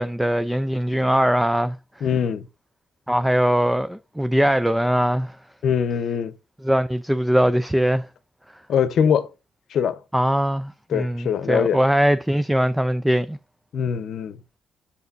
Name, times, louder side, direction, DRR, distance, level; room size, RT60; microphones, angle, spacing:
voice 1, 0.0-1.8 3.1-5.4 6.6-8.1 10.1-13.4, equal, 5° right, 0.4 m, -21 dB
voice 2, 2.0-2.5 5.6-6.3 8.7-9.3 9.7-10.0 10.9-11.8 13.7-14.4, left 7 dB, 65° left, 0.8 m, -22 dB
8.2 x 6.6 x 2.5 m
cardioid pair, 90°, 0 cm